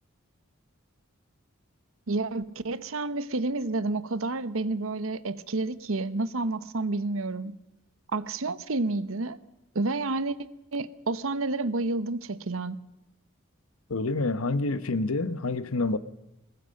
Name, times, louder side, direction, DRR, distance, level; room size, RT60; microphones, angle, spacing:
voice 1, 2.1-7.6 8.1-9.4 9.7-10.4 10.7-12.8, right 2 dB, 70° right, 0.9 m, -30 dB
voice 2, 13.9-16.0, left 3 dB, 80° left, 0.9 m, -27 dB
22.0 x 19.5 x 6.5 m
head